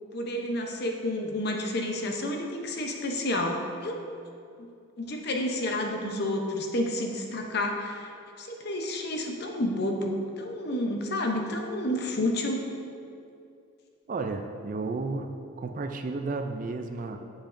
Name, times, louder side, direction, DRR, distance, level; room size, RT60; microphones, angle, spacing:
voice 1, 0.1-4.0 5.0-8.1 8.4-12.6, left 1 dB, 50° left, 2 dB, 0.7 m, -30 dB
voice 2, 14.1-17.2, right 3 dB, 40° right, 6 dB, 0.3 m, -33 dB
7.2 x 7.0 x 2.5 m, 2.5 s
head